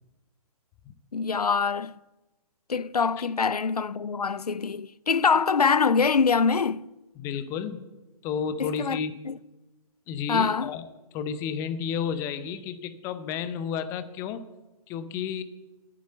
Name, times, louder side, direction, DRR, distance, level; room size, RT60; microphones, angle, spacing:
voice 1, 1.1-1.9 2.7-6.8 8.6-9.0 9.3-9.4 10.3-10.7, left 5 dB, 90° left, 0.4 m, -24 dB
voice 2, 7.1-7.8 8.2-9.1 10.1-10.9 11.1-14.4 14.9-15.4, left 7 dB, 15° left, 0.5 m, -31 dB
10.5 x 8.6 x 7.6 m
figure-of-eight pair, 130°, 19 cm